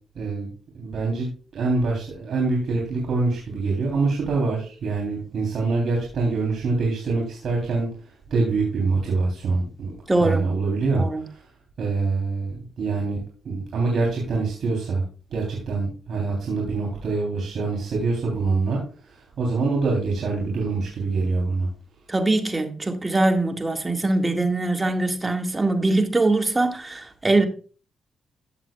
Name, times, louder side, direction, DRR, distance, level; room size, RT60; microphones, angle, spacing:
voice 1, 0.1-0.5 0.8-9.9 10.2-11.5 11.8-15.0 15.3-21.7, right 3 dB, 70° right, 3.2 m, -25 dB
voice 2, 10.1-10.4 10.9-11.2 22.1-27.4, right 2 dB, 25° right, 1.8 m, -22 dB
14.0 x 7.6 x 2.3 m
supercardioid pair, 50°, 0 cm